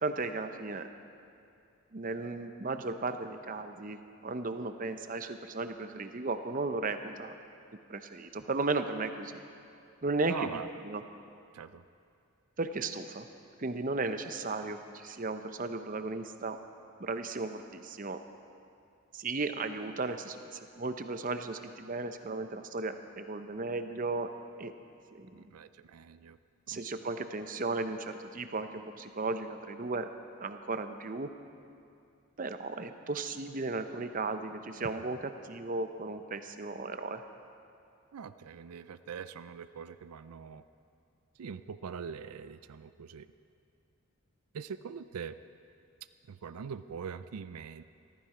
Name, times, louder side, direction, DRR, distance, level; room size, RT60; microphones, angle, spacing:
voice 1, 0.0-0.9 1.9-7.3 7.9-9.4 10.0-10.4 10.8-11.0 12.6-13.3 13.6-16.6 17.0-18.2 19.1-24.3 24.6-24.7 25.1-25.4 26.7-30.1 30.4-31.3 32.4-37.2, right 3 dB, 35° right, 9 dB, 0.6 m, -35 dB
voice 2, 10.2-10.7 11.5-11.8 25.3-26.4 26.7-26.8 38.1-40.6 41.4-43.3 44.5-45.4 46.3-47.8, right 6 dB, 85° right, 12 dB, 0.4 m, -42 dB
15.0 x 14.5 x 4.9 m, 2.5 s
head